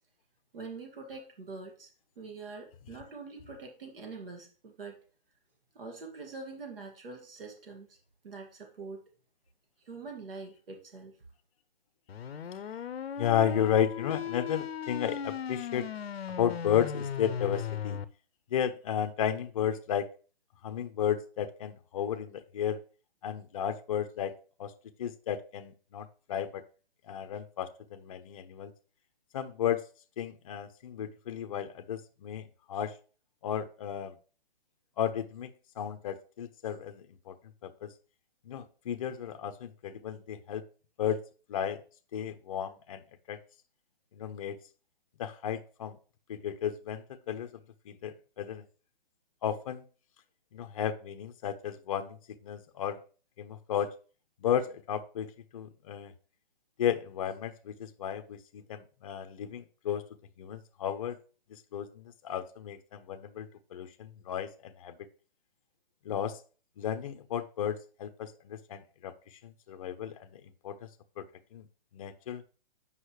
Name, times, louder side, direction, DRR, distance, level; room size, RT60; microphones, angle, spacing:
voice 1, 0.5-1.9 2.2-5.0 5.7-8.0 8.2-9.0 9.9-11.1, right 4 dB, 70° right, 2 dB, 2.1 m, -44 dB
sound 1, 12.1-18.1, left 8 dB, 85° left, 0.6 m, -37 dB
voice 2, 13.2-15.9 16.3-18.0 18.5-20.1 20.6-22.8 23.2-24.3 24.6-24.7 25.0-26.6 27.0-28.7 29.3-29.8 30.2-32.9 33.4-34.2 35.0-35.5 35.8-37.3 37.6-37.9 38.4-40.6 41.0-41.2 41.5-41.8 42.1-43.0 43.3-43.4 44.1-44.6 45.2-46.0 46.3-47.5 47.9-48.6 49.4-49.8 50.5-52.2 52.4-53.0 53.4-53.9 54.4-56.1 56.8-60.0 60.4-61.2 61.5-64.9 66.0-66.4 66.8-69.1 69.4-70.9 71.2-71.3 71.5-71.7 71.9-72.4, left 9 dB, 35° left, 8 dB, 0.6 m, -33 dB
8.1 x 5.4 x 3.2 m, 0.38 s
hypercardioid pair, 150°, 30 cm